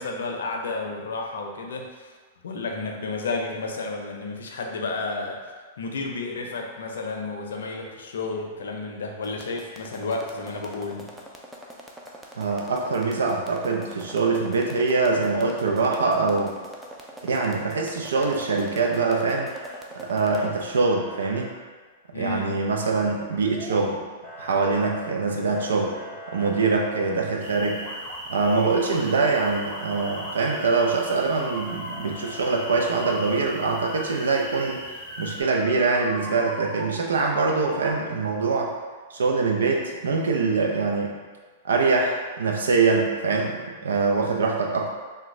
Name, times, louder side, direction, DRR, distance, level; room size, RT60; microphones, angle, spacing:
voice 1, 0.0-2.1 2.4-5.4 5.8-11.1 22.1-22.6, left 3 dB, 80° left, 2 dB, 0.5 m, -31 dB
sound 1, 9.2-20.5, right 1 dB, 10° right, 0.4 m, -42 dB
voice 2, 12.4-16.6 17.2-19.5 19.9-21.5 22.1-24.0 24.4-26.0 26.3-27.8 28.3-34.8 35.2-38.7 39.1-41.2 41.6-44.9, right 4 dB, 85° right, 1 dB, 0.5 m, -24 dB
Motor vehicle (road) / Siren, 18.0-19.0 19.3-19.8 20.2-21.5 23.3-24.0 24.2-27.2 27.7-28.2 28.6-37.9, left 1 dB, 10° left, 0.8 m, -41 dB
sound 2, 27.4-35.4, equal, 25° right, 1.1 m, -40 dB
3.4 x 2.2 x 3.1 m, 1.4 s
hypercardioid pair, 125°, 0 cm